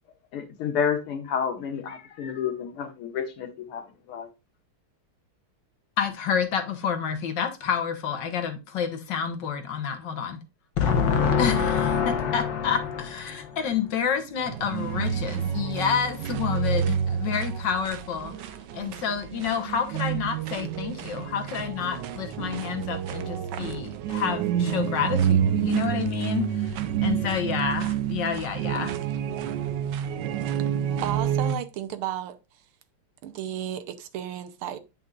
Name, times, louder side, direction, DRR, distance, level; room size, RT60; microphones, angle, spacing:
voice 1, 0.3-4.3, left 7 dB, 85° left, 2.2 m, -30 dB
voice 2, 6.0-10.4 10.8-18.3 18.7-29.0, left 7 dB, 60° left, 1.6 m, -28 dB
sound 1, 14.4-31.6, right 9 dB, 70° right, 1.1 m, -28 dB
voice 3, 31.0-32.4 33.2-34.8, right 11 dB, 90° right, 1.7 m, -33 dB
9.2 x 5.3 x 2.4 m
omnidirectional pair, 2.3 m